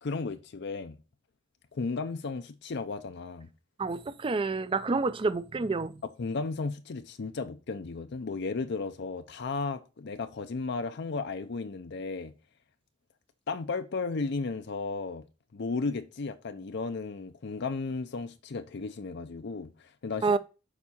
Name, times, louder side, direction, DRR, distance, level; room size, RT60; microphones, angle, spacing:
voice 1, 0.0-1.0 1.7-3.5 6.2-12.3 13.5-15.2 15.5-20.4, left 4 dB, 60° left, 0.5 m, -34 dB
voice 2, 3.8-6.0 20.2-20.4, right 3 dB, 25° right, 0.4 m, -28 dB
7.1 x 4.7 x 4.2 m
head